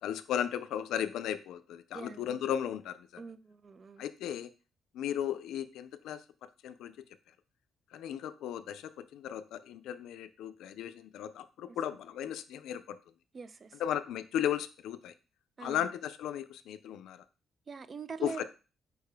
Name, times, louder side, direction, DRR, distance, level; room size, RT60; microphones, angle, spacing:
voice 1, 0.0-3.2 4.0-4.5 4.9-6.2 6.6-7.0 7.9-13.0 13.8-15.1 15.6-17.2 18.2-18.4, left 10 dB, 85° left, 0.4 m, -35 dB
voice 2, 1.9-2.4 3.2-4.0 11.7-11.8 13.3-13.8 15.6-15.9 17.7-18.4, right 5 dB, 40° right, 0.4 m, -44 dB
4.8 x 2.2 x 4.8 m
cardioid pair, 90°, 0 cm